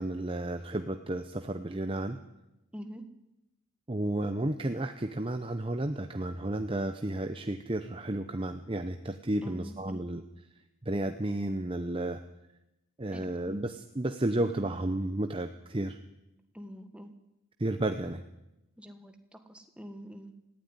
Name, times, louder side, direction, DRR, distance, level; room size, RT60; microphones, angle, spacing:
voice 1, 0.0-2.2 3.9-10.2 10.9-12.2 13.0-16.0 17.6-18.2, right 1 dB, 25° right, 7 dB, 0.7 m, -32 dB
voice 2, 9.4-10.0 13.1-13.6 16.5-17.1 18.8-20.5, equal, 5° right, 6 dB, 1.5 m, -45 dB
18.0 x 15.5 x 9.8 m, 0.93 s
head